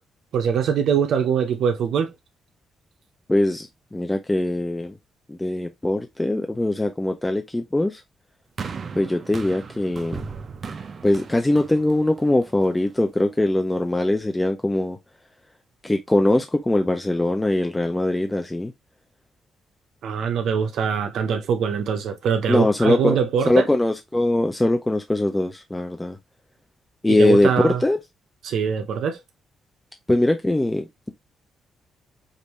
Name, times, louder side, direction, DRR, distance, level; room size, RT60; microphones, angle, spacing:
voice 1, 0.3-2.1 20.0-23.7 27.1-27.8 28.4-29.2, right 7 dB, 75° right, 0.9 m, -23 dB
voice 2, 3.3-4.9 5.3-8.0 9.0-10.2 11.0-15.0 15.8-18.7 22.5-23.2 23.5-26.2 27.0-28.0 30.1-31.1, left 1 dB, 10° left, 0.6 m, -21 dB
sound 1, 8.6-12.9 13.7-13.8, right 5 dB, 40° right, 0.7 m, -37 dB
5.3 x 2.7 x 3.1 m
cardioid pair, 115°, 0 cm